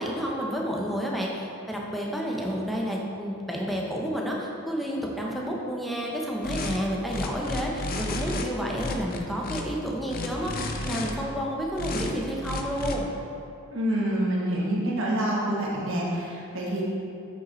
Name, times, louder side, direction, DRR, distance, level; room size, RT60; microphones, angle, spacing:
voice 1, 0.0-13.1, equal, ahead, -2 dB, 0.8 m, -30 dB
sound 1, 6.4-6.8 7.1-8.5 8.8-9.6 10.1-11.1 11.8-12.1 12.4-13.0, left 2 dB, 45° left, 0.5 m, -32 dB
voice 2, 13.7-16.8, right 1 dB, 60° right, -4 dB, 1.3 m, -27 dB
7.7 x 6.7 x 3.1 m, 2.6 s
head